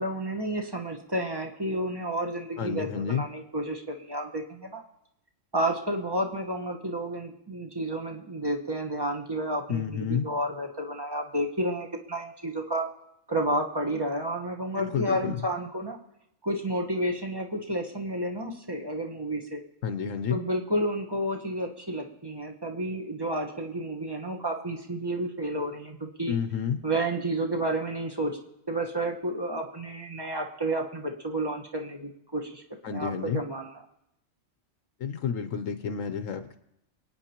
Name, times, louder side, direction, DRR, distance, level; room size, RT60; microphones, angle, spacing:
voice 1, 0.0-4.8 5.5-12.9 13.3-16.0 16.4-19.6 20.3-26.4 26.8-28.4 28.7-32.6 32.9-33.7, right 1 dB, 20° right, 1 dB, 1.2 m, -31 dB
voice 2, 2.6-3.2 9.7-10.3 14.7-15.4 19.8-20.4 26.3-26.8 32.8-33.4 35.0-36.6, left 7 dB, 70° left, 9 dB, 1.1 m, -30 dB
27.0 x 9.3 x 3.0 m, 0.81 s
omnidirectional pair, 1.4 m